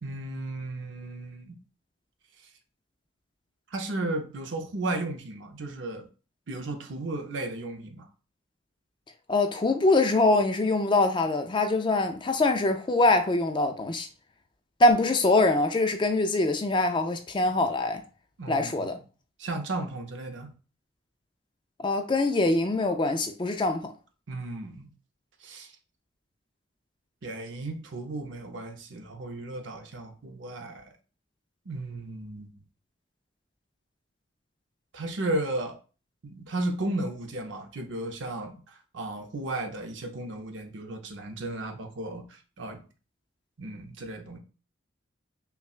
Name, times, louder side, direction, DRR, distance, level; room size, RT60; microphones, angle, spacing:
voice 1, 0.0-1.6 3.7-6.1 6.5-8.1 18.4-18.9 19.4-20.5 24.3-24.9 25.4-25.7 27.2-30.9 31.7-32.5 34.9-35.8 36.2-42.8 43.6-44.4, right 2 dB, 75° right, 0.7 m, -34 dB
voice 2, 9.3-14.1 14.8-18.0 18.5-18.9 21.8-23.9, left 2 dB, 25° left, 0.3 m, -23 dB
5.5 x 2.2 x 2.4 m
head